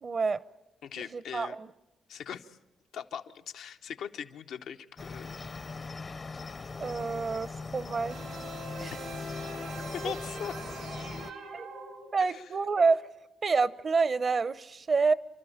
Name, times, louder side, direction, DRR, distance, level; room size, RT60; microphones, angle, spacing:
voice 1, 0.0-0.4 1.0-1.7 6.8-8.2 8.8-8.9 10.0-10.1 11.5-11.7 12.1-13.1 13.4-15.1, right 4 dB, 45° right, 0.8 m, -28 dB
voice 2, 0.8-1.6 2.1-2.6 2.9-5.4 9.9-10.6 12.3-12.4, left 8 dB, 85° left, 0.9 m, -40 dB
Cricket, 5.0-11.3, left 4 dB, 40° left, 0.7 m, -40 dB
sound 1, 8.1-12.4, right 1 dB, 90° right, 6.6 m, -42 dB
29.0 x 12.5 x 8.8 m
cardioid pair, 75°, 0 cm